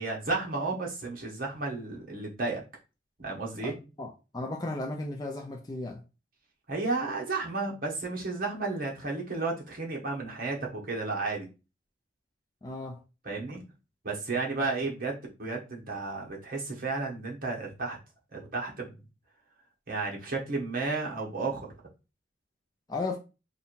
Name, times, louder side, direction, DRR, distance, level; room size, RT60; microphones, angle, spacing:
voice 1, 0.0-2.6 3.2-3.7 6.7-11.5 13.2-13.6 14.0-18.0 18.3-18.9 19.9-21.7, right 3 dB, 45° right, 1.2 m, -32 dB
voice 2, 4.0-6.0 12.6-13.0 22.9-23.2, left 2 dB, 20° left, 0.4 m, -35 dB
3.4 x 2.6 x 4.4 m
head